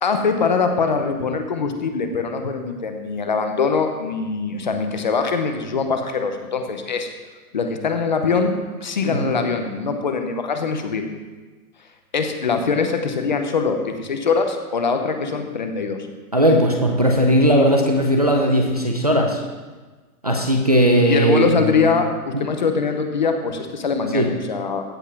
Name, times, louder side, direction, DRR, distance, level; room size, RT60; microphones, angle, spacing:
voice 1, 0.0-7.1 7.5-8.5 8.8-11.1 12.1-16.0 21.0-24.8, left 5 dB, 30° left, 6 dB, 0.9 m, -22 dB
voice 2, 9.1-9.4 16.3-19.4 20.2-21.8 24.1-24.3, equal, 25° right, 1 dB, 0.5 m, -18 dB
15.5 x 5.4 x 6.0 m, 1.3 s
hypercardioid pair, 180°, 45 cm